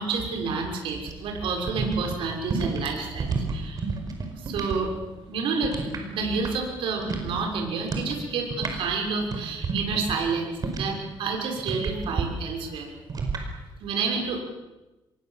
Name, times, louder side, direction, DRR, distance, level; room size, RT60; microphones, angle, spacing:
voice 1, 0.0-3.8 4.4-12.9 13.8-14.4, right 4 dB, 85° right, 2 dB, 6.3 m, -29 dB
sound 1, 1.0-4.8 5.1-6.7 7.0-7.4 7.8-8.1 8.4-11.1 11.6-12.3 13.1-13.4, right 4 dB, 45° right, 5.0 m, -30 dB
26.5 x 22.0 x 7.6 m, 1.1 s
cardioid pair, 125°, 9 cm